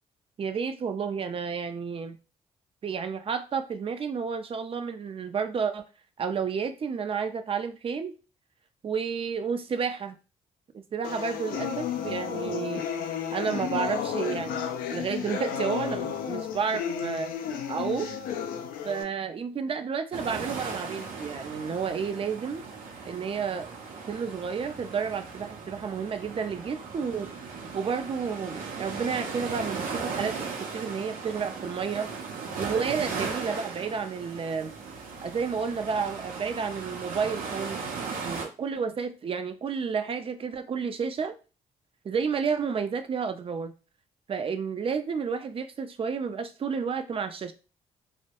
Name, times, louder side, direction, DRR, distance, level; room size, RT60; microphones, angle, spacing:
voice 1, 0.4-2.2 2.8-5.8 6.2-8.1 8.8-10.2 10.7-12.9 13.3-17.4 17.7-18.1 18.8-22.7 23.0-23.7 24.1-27.3 27.7-32.1 32.6-34.7 35.2-37.8 38.2-41.3 42.0-43.7 44.3-47.5, right 6 dB, 40° right, 0.4 m, -31 dB
sound 1, 11.0-19.0, left 8 dB, 80° left, 0.4 m, -32 dB
sound 2, 20.1-38.5, right 5 dB, 80° right, 0.6 m, -37 dB
2.1 x 2.0 x 2.8 m
supercardioid pair, 65°, 14 cm